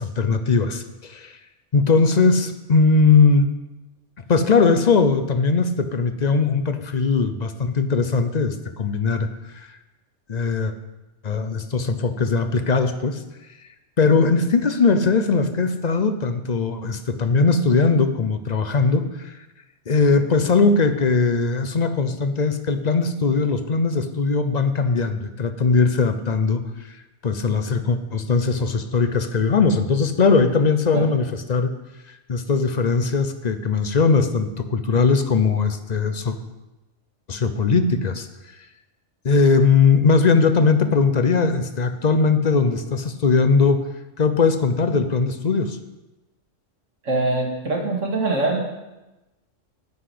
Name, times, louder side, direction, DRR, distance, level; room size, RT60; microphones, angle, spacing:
voice 1, 0.0-1.4 1.7-3.5 4.3-9.3 9.5-9.7 10.3-10.7 11.2-13.2 14.0-19.4 19.9-27.0 27.2-31.7 32.1-36.3 37.3-38.3 39.2-43.9 44.2-45.8, left 4 dB, 45° left, 9 dB, 0.6 m, -20 dB
voice 2, 47.0-48.6, right 2 dB, 80° right, 0 dB, 2.2 m, -23 dB
9.6 x 5.9 x 8.5 m, 1.0 s
omnidirectional pair, 1.3 m